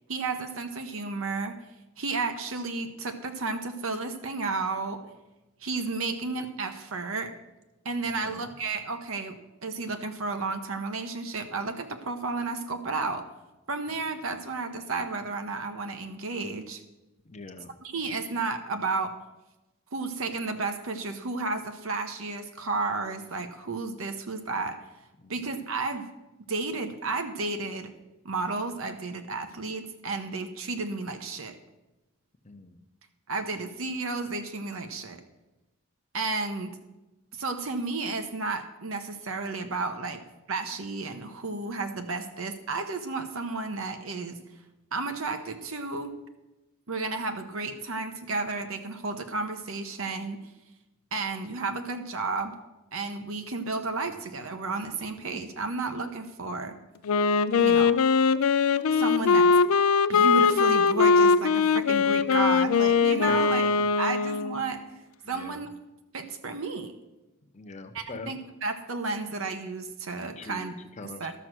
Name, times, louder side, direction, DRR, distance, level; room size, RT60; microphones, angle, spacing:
voice 1, 0.1-1.6 2.0-5.1 5.6-7.4 7.8-13.3 13.7-16.8 17.8-19.2 19.9-24.9 25.3-26.1 26.5-27.9 28.2-31.6 33.3-35.2 36.1-36.8 37.3-40.2 40.5-44.4 44.9-46.2 46.9-50.5 51.1-52.6 52.9-56.8 57.6-58.0 58.9-59.5 60.1-63.6 64.0-64.8 65.3-65.7 66.1-66.9 67.9-70.7 71.2-71.3, right 3 dB, 75° right, 7 dB, 1.0 m, -32 dB
voice 2, 8.0-8.5 17.2-17.7 18.0-18.1 25.2-25.3 32.4-32.8 54.1-54.3 63.3-63.9 65.2-65.6 67.5-68.3 70.4-71.3, left 3 dB, 35° left, 7 dB, 0.7 m, -43 dB
Wind instrument woodwind instrument, 57.1-64.7, left 5 dB, 80° left, 0.4 m, -21 dB
12.0 x 6.5 x 6.1 m, 1.0 s
head